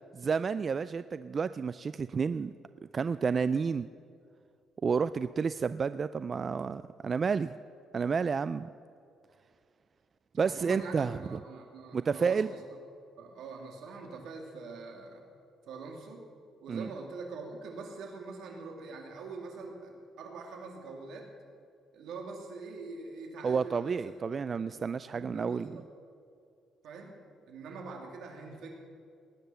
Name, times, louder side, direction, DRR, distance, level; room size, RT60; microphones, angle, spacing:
voice 1, 0.1-2.5 2.9-3.9 4.8-7.5 7.9-8.7 10.4-11.4 11.9-12.5 16.7-16.9 23.4-25.8, right 5 dB, 35° right, 14 dB, 0.3 m, -30 dB
voice 2, 10.5-12.5 13.2-15.2 15.7-16.2 16.6-21.3 21.9-24.0 24.6-24.7 25.1-25.8 26.8-27.1 27.5-28.7, right 4 dB, 75° right, 2 dB, 2.9 m, -43 dB
19.5 x 10.0 x 7.0 m, 2.4 s
cardioid pair, 120°, 0 cm